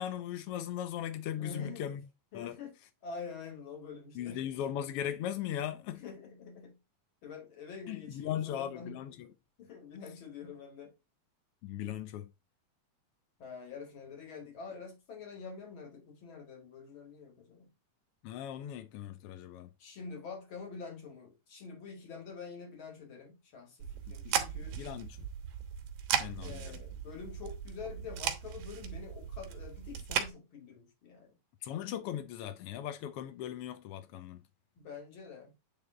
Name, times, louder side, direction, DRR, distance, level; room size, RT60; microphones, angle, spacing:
voice 1, 0.0-2.0 2.3-2.5 4.1-6.0 7.9-9.1 11.6-12.3 18.2-19.7 24.2-24.4 24.8-25.1 26.2-26.8 31.6-34.4, left 10 dB, 80° left, 1.3 m, -38 dB
voice 2, 1.3-1.9 2.3-4.5 6.0-6.8 7.2-9.0 9.6-10.9 13.4-17.7 19.8-24.8 26.4-31.4 34.8-35.5, left 5 dB, 45° left, 2.4 m, -46 dB
sound 1, 23.8-30.3, right 8 dB, 85° right, 2.4 m, -37 dB
9.1 x 3.5 x 3.7 m
omnidirectional pair, 3.4 m